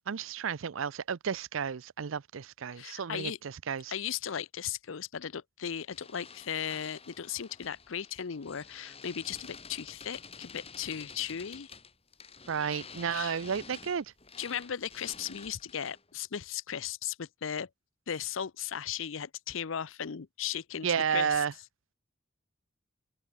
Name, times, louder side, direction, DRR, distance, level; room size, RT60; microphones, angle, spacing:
voice 1, 0.1-3.9 12.5-14.1 20.8-21.5, right 7 dB, 80° right, 0.5 m, -32 dB
voice 2, 2.7-3.4 3.9-11.7 13.1-13.4 14.4-17.7 18.1-21.4, left 8 dB, 75° left, 0.6 m, -37 dB
sound 1, 5.9-16.1, left 5 dB, 30° left, 6.8 m, -50 dB
open air
head